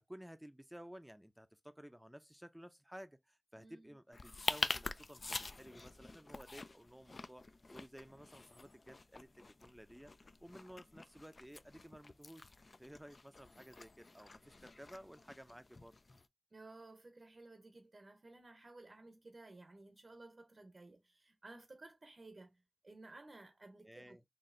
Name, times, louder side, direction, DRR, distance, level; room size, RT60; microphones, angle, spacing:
voice 1, 0.0-7.4 7.7-10.1 10.4-12.5 12.8-15.9 23.8-24.2, equal, 5° right, 0.5 m, -55 dB
voice 2, 3.6-4.0 16.5-24.2, right 2 dB, 55° right, 0.7 m, -56 dB
sound 1, 4.1-16.2, left 3 dB, 55° left, 0.3 m, -46 dB
4.2 x 2.8 x 2.5 m
wide cardioid pair, 75°, 0 cm